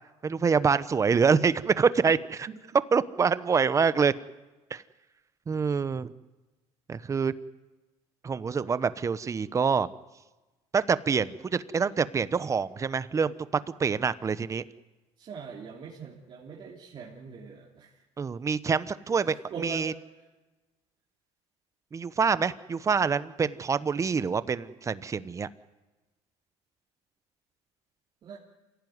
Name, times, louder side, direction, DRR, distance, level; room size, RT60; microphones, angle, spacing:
voice 1, 0.2-2.5 2.9-4.1 4.7-4.8 5.5-6.1 6.9-7.3 8.2-9.9 10.7-13.3 13.8-14.6 18.2-19.3 19.6-19.9 21.9-25.5, right 5 dB, 25° right, 15 dB, 0.9 m, -26 dB
voice 2, 15.2-17.9 19.3-19.9 28.2-28.4, right 5 dB, 45° right, -3 dB, 3.4 m, -42 dB
27.0 x 16.5 x 9.5 m, 1.2 s
cardioid pair, 115°, 12 cm